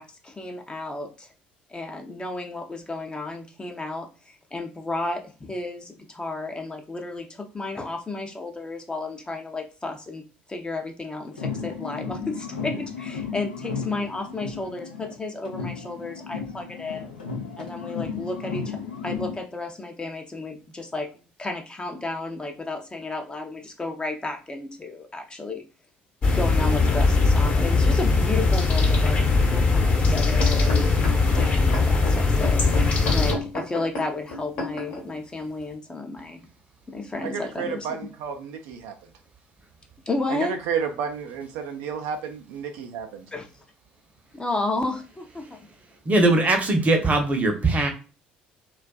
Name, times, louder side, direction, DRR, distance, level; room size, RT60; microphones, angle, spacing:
voice 1, 0.0-1.3 1.7-10.2 10.5-17.1 17.6-21.1 21.4-25.6 26.2-36.4 36.9-37.9 40.1-40.6 43.3-43.5 44.3-45.6, left 2 dB, 20° left, 4 dB, 0.6 m, -32 dB
sound 1, 11.3-15.2 15.4-19.4, left 6 dB, 90° left, 0.5 m, -34 dB
sound 2, 26.2-33.3, left 3 dB, 35° left, 1.0 m, -20 dB
sound 3, 30.1-35.0 35.7-35.8, left 2 dB, 65° left, 0.9 m, -32 dB
voice 2, 37.2-38.9 40.3-43.2, right 6 dB, 70° right, 5 dB, 0.4 m, -31 dB
voice 3, 46.1-47.9, right 2 dB, 30° right, 4 dB, 0.7 m, -20 dB
2.4 x 2.3 x 2.2 m, 0.35 s
hypercardioid pair, 55°, 5 cm